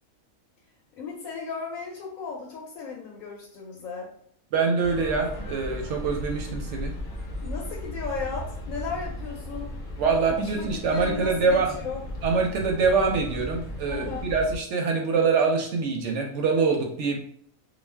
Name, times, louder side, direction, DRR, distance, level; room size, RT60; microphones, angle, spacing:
voice 1, 1.0-4.1 7.4-9.8 10.3-12.0 13.9-14.3, left 5 dB, 75° left, -2 dB, 1.0 m, -35 dB
voice 2, 4.5-6.9 10.0-11.7 12.2-17.2, right 4 dB, 65° right, 3 dB, 0.8 m, -24 dB
sound 1, 4.8-14.6, left 1 dB, 45° left, 0.7 m, -36 dB
2.4 x 2.2 x 3.2 m, 0.62 s
omnidirectional pair, 1.5 m